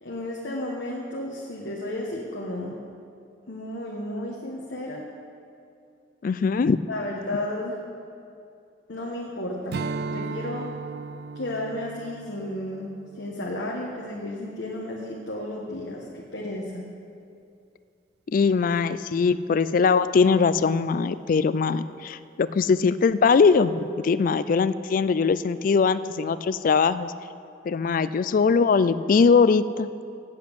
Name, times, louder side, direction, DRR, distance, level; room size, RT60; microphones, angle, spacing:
voice 1, 0.0-2.8 3.5-5.0 6.9-7.8 8.9-9.8 10.1-10.7 11.3-12.9 13.2-16.8, left 1 dB, 90° left, -3 dB, 1.2 m, -33 dB
voice 2, 6.2-6.8 18.3-27.1 27.7-29.9, left 5 dB, 50° left, 15 dB, 0.3 m, -21 dB
Strum, 9.7-14.4, right 4 dB, 60° right, 0.4 m, -36 dB
8.0 x 7.5 x 8.5 m, 2.5 s
head